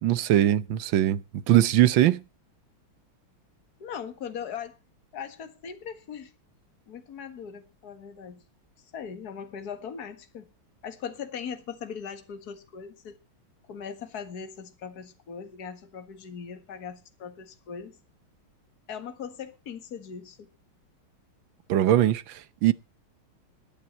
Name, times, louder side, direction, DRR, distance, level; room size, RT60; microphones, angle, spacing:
voice 1, 0.0-1.2 1.5-2.2 21.7-22.7, right 12 dB, 70° right, 1.6 m, -21 dB
voice 2, 3.8-4.8 5.1-6.3 6.9-8.4 8.9-10.5 10.8-13.2 13.7-18.0 18.9-20.5, left 7 dB, 50° left, 2.1 m, -39 dB
21.0 x 9.0 x 4.4 m
omnidirectional pair, 2.3 m